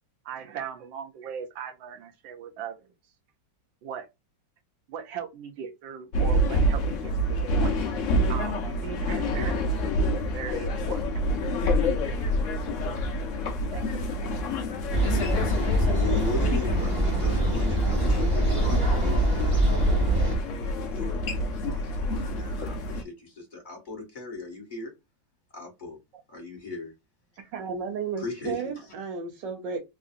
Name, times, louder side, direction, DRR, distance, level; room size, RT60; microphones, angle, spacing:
voice 1, 0.2-2.9 3.8-4.1 4.9-7.8 8.3-9.8 10.1-11.0 12.1-12.2 13.7-14.0, right 7 dB, 90° right, 1.4 m, -39 dB
sound 1, 6.1-23.0, left 1 dB, 60° left, 0.8 m, -27 dB
sound 2, 14.9-20.4, right 1 dB, 35° right, 1.1 m, -24 dB
voice 2, 15.7-20.1 20.6-24.9 25.5-26.0 26.3-26.9 28.2-28.9, left 3 dB, 25° left, 1.7 m, -38 dB
voice 3, 27.4-29.8, right 5 dB, 70° right, 1.4 m, -33 dB
3.7 x 2.6 x 2.5 m
omnidirectional pair, 2.1 m